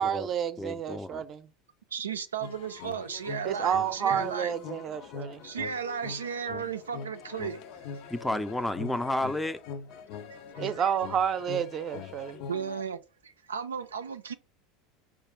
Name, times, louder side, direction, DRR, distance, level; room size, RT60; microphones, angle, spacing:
voice 1, 0.0-1.5 3.4-5.4 10.6-12.4, right 8 dB, 40° right, 0.6 m, -30 dB
voice 2, 0.6-1.2 8.1-9.6, left 1 dB, 10° left, 0.5 m, -31 dB
voice 3, 1.9-4.5 5.4-7.6 10.3-10.8 12.5-14.3, right 7 dB, 85° right, 0.4 m, -35 dB
sound 1, 2.4-12.8, left 6 dB, 60° left, 0.6 m, -42 dB
4.7 x 2.5 x 4.6 m
hypercardioid pair, 80°, 0 cm